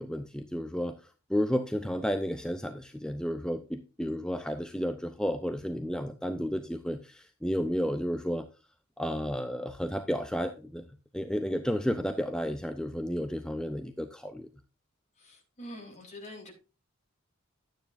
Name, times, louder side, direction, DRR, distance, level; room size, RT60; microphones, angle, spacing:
voice 1, 0.0-8.5 9.0-10.8 11.1-14.5, equal, 5° left, 7 dB, 0.6 m, -32 dB
voice 2, 15.2-16.5, left 1 dB, 35° left, 1 dB, 3.8 m, -45 dB
12.5 x 9.2 x 2.6 m, 0.31 s
head